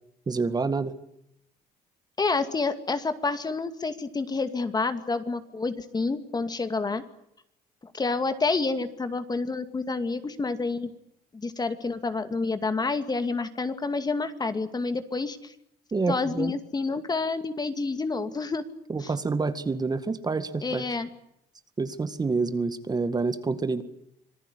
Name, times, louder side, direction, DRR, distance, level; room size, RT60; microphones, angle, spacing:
voice 1, 0.3-0.9 15.9-16.5 18.9-20.8 21.8-23.8, right 4 dB, 25° right, 10 dB, 1.9 m, -27 dB
voice 2, 2.2-7.0 7.9-10.9 11.3-15.5 16.1-18.6 19.0-19.1 20.6-21.1, left 3 dB, 25° left, 9 dB, 2.3 m, -28 dB
26.5 x 18.0 x 9.7 m, 0.77 s
cardioid pair, 110°, 17 cm